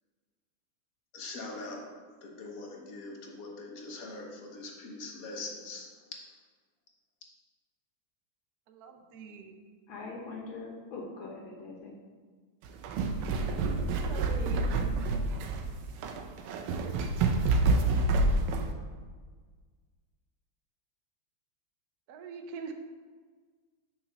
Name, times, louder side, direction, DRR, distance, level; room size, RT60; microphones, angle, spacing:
voice 1, 1.1-1.8 2.2-5.9, left 2 dB, 50° left, 0 dB, 1.3 m, -42 dB
voice 2, 8.7-9.5 13.9-14.7 22.1-22.7, right 5 dB, 65° right, 4 dB, 0.9 m, -43 dB
voice 3, 9.9-11.9, left 3 dB, 70° left, -2 dB, 1.6 m, -42 dB
sound 1, 12.7-18.7, right 3 dB, 85° right, 1.6 m, -28 dB
6.0 x 4.0 x 6.2 m, 1.5 s
omnidirectional pair, 2.4 m